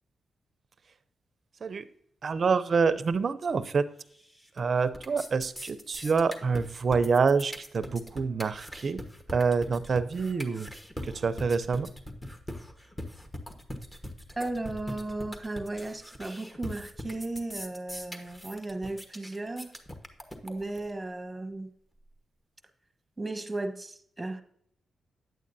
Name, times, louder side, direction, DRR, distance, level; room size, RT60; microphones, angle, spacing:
voice 1, 2.2-3.9 4.6-9.0 9.3-10.7 11.0-11.9, right 5 dB, 50° right, 0.5 m, -27 dB
sound 1, 4.1-4.6 4.9-20.9, equal, 15° left, 1.2 m, -41 dB
voice 2, 14.4-19.7 20.4-21.7 23.2-24.4, right 2 dB, 15° right, 1.0 m, -35 dB
9.1 x 8.4 x 2.6 m
cardioid pair, 75°, 0 cm